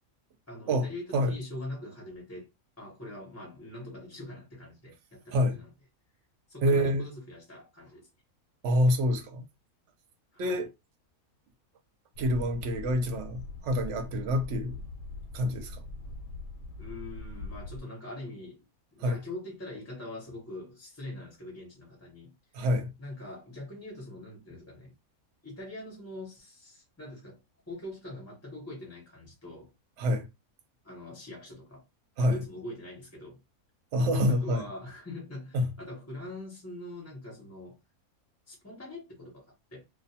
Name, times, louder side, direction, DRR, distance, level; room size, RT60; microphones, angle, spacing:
voice 1, 0.5-2.5 2.8-5.7 6.5-8.1 10.3-10.7 16.8-18.7 18.9-22.3 23.0-24.9 25.4-27.4 27.7-29.7 30.8-31.9 32.2-33.4 34.3-37.8 38.5-39.8, left 1 dB, 15° left, 0.6 m, -43 dB
voice 2, 6.6-7.1 8.6-9.4 10.4-10.7 12.2-14.8 15.3-15.8 19.0-19.2 22.5-22.9 30.0-30.3 32.2-32.4 33.9-34.6 35.5-35.7, equal, 65° right, 0.8 m, -26 dB
sound 1, 12.1-17.8, left 2 dB, 65° left, 0.9 m, -42 dB
2.3 x 2.3 x 2.7 m
omnidirectional pair, 1.5 m